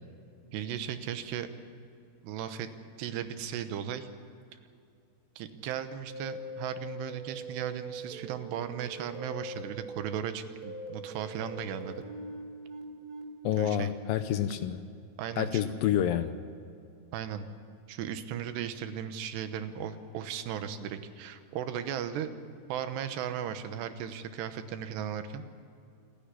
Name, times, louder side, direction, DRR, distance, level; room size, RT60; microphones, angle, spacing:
voice 1, 0.5-1.5 2.2-2.7 3.0-4.1 5.4-12.0 13.6-13.9 15.2-15.6 17.1-17.5 17.9-22.3 22.7-25.4, right 9 dB, 90° right, 9 dB, 3.2 m, -36 dB
sound 1, 6.1-13.6, right 1 dB, 25° right, 2.6 m, -42 dB
voice 2, 13.4-14.8 15.4-16.4, left 10 dB, 80° left, 10 dB, 2.1 m, -28 dB
27.5 x 10.0 x 9.9 m, 2.5 s
omnidirectional pair, 4.8 m